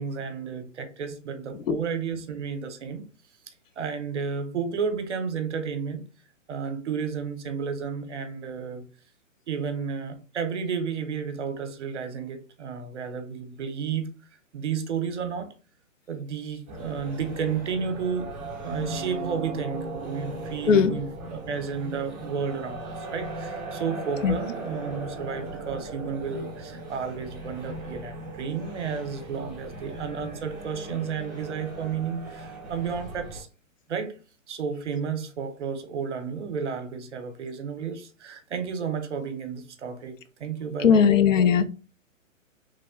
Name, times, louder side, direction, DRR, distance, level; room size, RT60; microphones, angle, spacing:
voice 1, 0.0-3.1 3.8-6.0 6.5-8.9 9.5-14.1 14.5-15.5 16.1-18.3 18.6-33.5 33.9-34.2 34.5-41.2, right 6 dB, 55° right, 0.7 m, -32 dB
sound 1, 16.7-33.4, right 2 dB, 15° right, 0.6 m, -38 dB
voice 2, 40.8-41.7, left 7 dB, 70° left, 0.5 m, -18 dB
3.3 x 2.0 x 3.6 m
hypercardioid pair, 170°, 41 cm